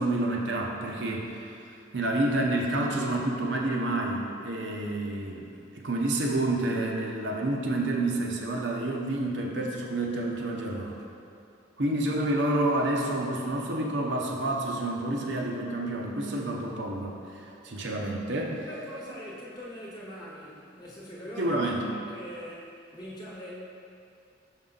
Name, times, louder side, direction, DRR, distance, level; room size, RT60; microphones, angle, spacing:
voice 1, 0.0-1.6 1.9-11.0 11.8-18.7 21.4-21.9, right 1 dB, 65° right, -1 dB, 0.7 m, -29 dB
voice 2, 18.6-23.5, equal, 20° left, -6 dB, 1.1 m, -42 dB
6.0 x 5.5 x 3.8 m, 2.5 s
head